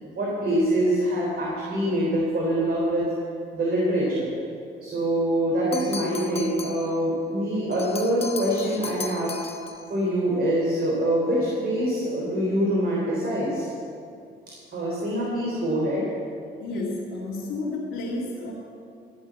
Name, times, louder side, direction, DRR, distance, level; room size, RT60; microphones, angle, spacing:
voice 1, 0.0-3.0 3.5-4.3 4.8-9.4 9.9-13.7 14.7-16.1, right 1 dB, 50° right, -5 dB, 3.7 m, -24 dB
sound 1, 5.7-6.9 7.7-9.9, left 4 dB, 30° left, 1.1 m, -37 dB
voice 2, 16.6-18.5, left 2 dB, 85° left, -6 dB, 2.4 m, -31 dB
15.0 x 7.5 x 8.3 m, 2.4 s
cardioid pair, 90°, 20 cm